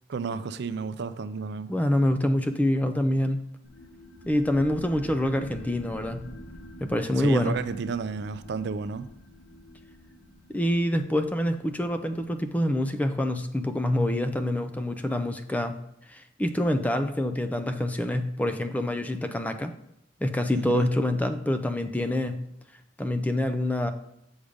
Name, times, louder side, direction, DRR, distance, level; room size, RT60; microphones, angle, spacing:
voice 1, 0.1-1.7 7.2-9.1 20.5-20.9, right 5 dB, 60° right, 0.4 m, -32 dB
voice 2, 1.7-3.4 4.3-6.2 6.8-7.6 10.5-15.8 16.1-19.8 20.2-22.4 23.0-23.9, left 1 dB, 10° left, 0.4 m, -26 dB
sound 1, 3.6-14.8, equal, 75° left, 2.0 m, -48 dB
7.1 x 5.2 x 5.0 m
head